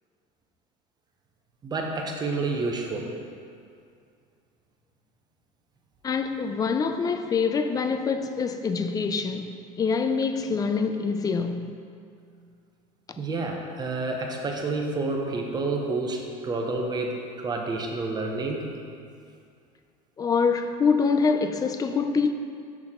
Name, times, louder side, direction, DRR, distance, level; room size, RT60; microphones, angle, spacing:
voice 1, 1.6-3.1 13.2-18.7, right 3 dB, 25° right, 0.9 m, -29 dB
voice 2, 6.0-11.8 20.2-22.3, left 5 dB, 20° left, 0.4 m, -25 dB
6.2 x 6.0 x 3.7 m
supercardioid pair, 120°, 17 cm